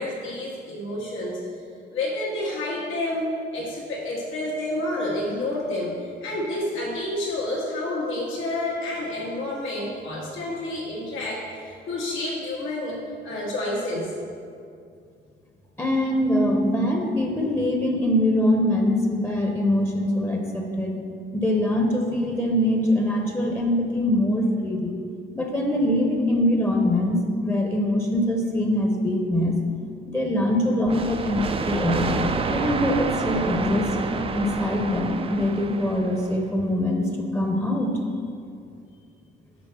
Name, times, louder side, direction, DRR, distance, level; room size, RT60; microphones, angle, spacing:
voice 1, 0.0-1.4 1.9-3.3 3.5-5.9 6.2-13.0 13.2-14.1, left 1 dB, 80° left, -4 dB, 1.6 m, -29 dB
voice 2, 15.8-20.9 21.3-25.0 25.3-29.6 30.1-32.2 32.5-33.9 34.3-37.9, left 1 dB, 10° left, 1 dB, 0.8 m, -23 dB
sound 1, 30.9-36.4, right 4 dB, 30° right, 0.4 m, -28 dB
6.1 x 4.3 x 5.6 m, 2.3 s
cardioid pair, 90°, 20 cm